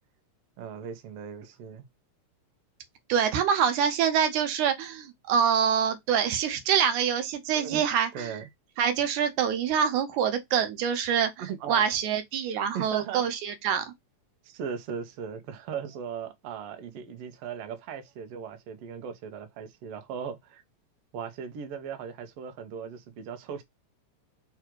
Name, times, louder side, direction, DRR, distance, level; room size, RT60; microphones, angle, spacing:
voice 1, 0.6-1.9 7.5-7.8 8.1-8.5 11.4-11.9 12.7-13.2 14.4-20.6 21.1-23.6, right 7 dB, 70° right, 1.6 m, -38 dB
voice 2, 3.1-8.3 8.8-11.3 11.7-13.9, right 8 dB, 85° right, 2.2 m, -25 dB
4.8 x 2.4 x 4.4 m
omnidirectional pair, 3.4 m